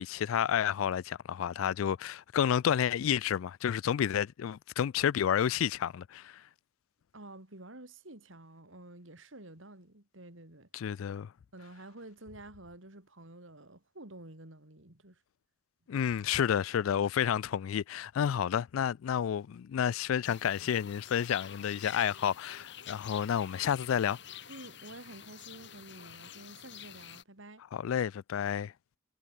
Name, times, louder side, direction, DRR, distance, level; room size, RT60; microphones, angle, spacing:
voice 1, 0.0-6.4 10.7-11.3 15.9-24.2 27.7-28.7, left 9 dB, 90° left, 0.3 m, -30 dB
voice 2, 7.1-10.7 11.5-15.2 24.5-27.6, right 2 dB, 75° right, 3.6 m, -50 dB
sound 1, 20.2-27.2, left 9 dB, 60° left, 3.7 m, -48 dB
head